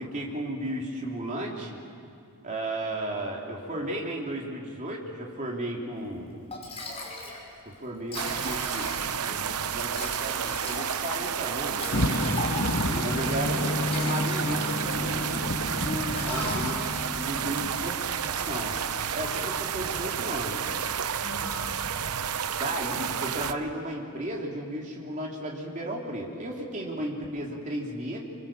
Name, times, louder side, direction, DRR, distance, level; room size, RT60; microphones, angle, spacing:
voice 1, 0.0-1.8 2.4-6.4 7.6-9.0 9.2-12.1 13.0-15.5 16.1-16.7 17.1-18.0 18.2-18.8 19.1-20.6 22.5-28.2, right 1 dB, 35° right, -2 dB, 3.4 m, -34 dB
Liquid, 6.1-6.2 6.5-7.4 7.7-7.8 8.0-9.3 9.9-13.0 13.6-15.1 15.5-15.7 16.1-17.1, left 2 dB, 30° left, 5.7 m, -39 dB
sound 1, 8.1-23.5, right 7 dB, 85° right, 0.8 m, -31 dB
sound 2, 11.9-17.6, left 1 dB, 60° left, 1.4 m, -30 dB
voice 2, 12.7-13.1 15.8-17.5 21.2-21.8, left 1 dB, 5° left, -7 dB, 3.7 m, -38 dB
26.5 x 25.5 x 7.5 m, 2.5 s
head